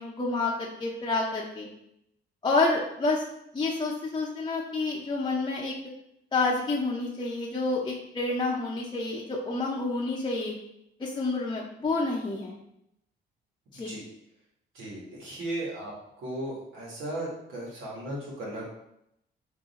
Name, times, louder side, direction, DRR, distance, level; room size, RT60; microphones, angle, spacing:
voice 1, 0.0-1.7 2.4-3.2 3.5-5.7 6.3-10.5 11.0-12.6 13.7-13.9, left 3 dB, 25° left, -4 dB, 0.7 m, -29 dB
voice 2, 14.7-15.9 16.2-18.7, right 1 dB, 85° right, -4 dB, 1.6 m, -36 dB
3.7 x 2.7 x 4.1 m, 0.78 s
cardioid pair, 90°, 20 cm